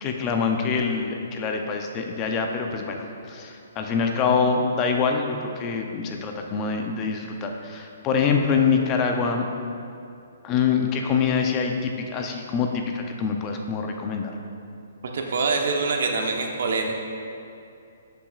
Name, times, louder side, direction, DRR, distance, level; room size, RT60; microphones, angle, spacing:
voice 1, 0.0-9.5 10.4-14.3, left 5 dB, 25° left, 3 dB, 0.5 m, -25 dB
voice 2, 15.1-16.9, right 4 dB, 65° right, 2 dB, 1.0 m, -24 dB
13.0 x 5.9 x 2.4 m, 2.5 s
hypercardioid pair, 160°, 0 cm